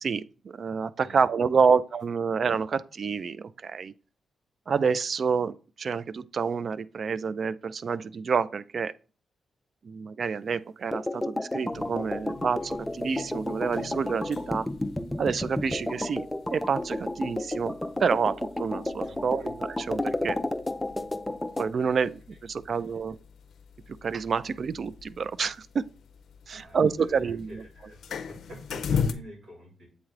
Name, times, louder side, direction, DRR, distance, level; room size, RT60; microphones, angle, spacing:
voice 1, 0.0-3.9 4.7-8.9 9.8-14.7 15.2-17.7 18.0-20.4 21.6-23.2 24.0-25.8 26.5-27.6, right 5 dB, 60° right, 0.3 m, -28 dB
sound 1, 10.9-21.7, left 1 dB, 10° left, 0.5 m, -32 dB
sound 2, 11.7-29.1, left 6 dB, 75° left, 0.5 m, -40 dB
voice 2, 19.0-19.5 22.7-23.0 26.5-29.9, equal, 85° right, 3.2 m, -47 dB
8.0 x 3.2 x 3.7 m
cardioid pair, 70°, 0 cm